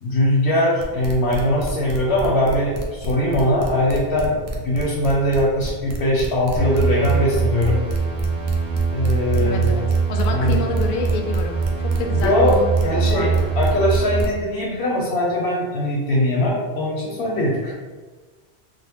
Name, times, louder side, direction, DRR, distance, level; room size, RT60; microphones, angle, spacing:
voice 1, 0.0-7.8 8.9-9.7 10.3-10.6 12.2-12.5 12.8-17.7, left 1 dB, 80° left, -4 dB, 0.9 m, -21 dB
sound 1, 0.8-14.4, right 1 dB, 45° right, 0.5 m, -30 dB
sound 2, 6.6-14.2, right 5 dB, 65° right, 1.2 m, -22 dB
voice 2, 9.3-13.5, left 4 dB, 60° left, 2 dB, 0.6 m, -29 dB
3.7 x 2.1 x 3.4 m, 1.4 s
omnidirectional pair, 1.1 m